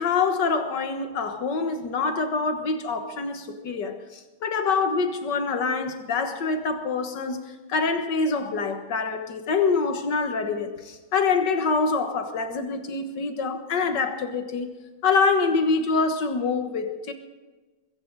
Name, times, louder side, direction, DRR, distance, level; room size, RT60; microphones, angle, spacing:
voice 1, 0.0-7.4 7.7-14.7 15.0-17.1, left 4 dB, 60° left, 1.9 m, -25 dB
22.0 x 15.0 x 4.0 m
omnidirectional pair, 2.2 m